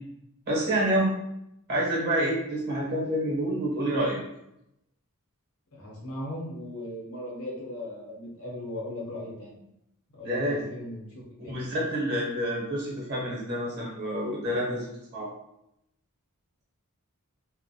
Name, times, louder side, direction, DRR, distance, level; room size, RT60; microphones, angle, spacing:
voice 1, 0.5-1.1 1.7-4.2 10.2-10.6 11.5-15.3, right 1 dB, 50° right, -4 dB, 0.7 m, -28 dB
voice 2, 5.7-9.6 10.1-11.8, left 1 dB, 70° left, -3 dB, 0.7 m, -38 dB
2.3 x 2.0 x 2.6 m, 0.82 s
head